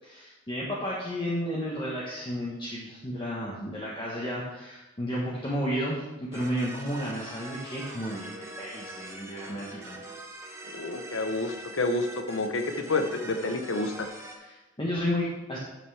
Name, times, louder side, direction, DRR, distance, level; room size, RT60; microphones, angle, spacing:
voice 1, 0.1-8.3 8.6-10.0 14.4-15.6, equal, 25° left, -5 dB, 1.1 m, -32 dB
sound 1, 6.3-14.3, right 2 dB, 15° right, 0.9 m, -43 dB
voice 2, 10.7-14.1, left 2 dB, 85° left, 6 dB, 0.9 m, -29 dB
12.0 x 5.9 x 3.3 m, 1.1 s
head